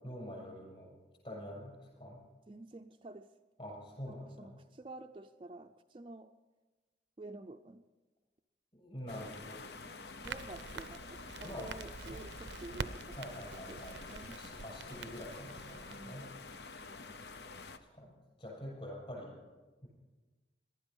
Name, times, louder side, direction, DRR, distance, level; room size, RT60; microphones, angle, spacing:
voice 1, 0.0-1.0 1.2-2.2 3.6-4.6 8.7-9.6 11.4-11.7 12.1-12.2 13.1-14.0 14.3-16.3 17.7-19.4 19.8-19.9, equal, 30° left, -3 dB, 7.1 m, -46 dB
voice 2, 2.5-3.3 4.1-6.3 7.2-7.8 10.2-14.4 15.8-16.6, right 2 dB, 30° right, 5 dB, 0.4 m, -50 dB
sound 1, 9.1-17.8, left 3 dB, 70° left, 0.8 m, -48 dB
Crackle, 10.2-16.0, right 4 dB, 85° right, 0.6 m, -46 dB
18.5 x 12.5 x 5.5 m, 1.2 s
head